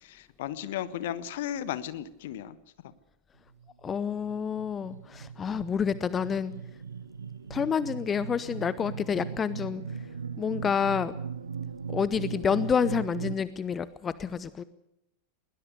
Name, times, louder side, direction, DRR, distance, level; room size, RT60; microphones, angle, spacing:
voice 1, 0.0-2.6 2.8-2.9, left 11 dB, 55° left, 15 dB, 1.3 m, -35 dB
sound 1, 3.6-13.3, right 6 dB, 70° right, 1.1 m, -39 dB
voice 2, 3.8-6.5 7.5-9.8 10.4-11.1 11.9-14.6, left 7 dB, 20° left, 17 dB, 0.8 m, -28 dB
21.0 x 19.5 x 6.7 m, 0.83 s
figure-of-eight pair, 90°, 0 cm